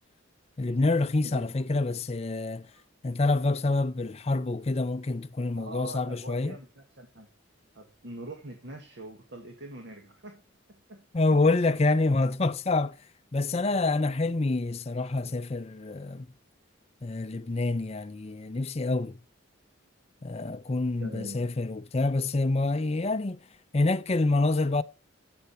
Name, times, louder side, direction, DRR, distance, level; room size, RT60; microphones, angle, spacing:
voice 1, 0.6-2.7 3.0-6.6 11.1-13.0 13.3-16.3 17.0-19.2 20.2-23.4 23.7-24.8, left 2 dB, 30° left, 0.5 m, -27 dB
voice 2, 5.6-7.3 7.7-10.4 10.7-11.8 17.4-17.6 20.4-20.6 21.0-21.5, right 1 dB, 60° right, 1.9 m, -44 dB
12.0 x 7.9 x 4.3 m
head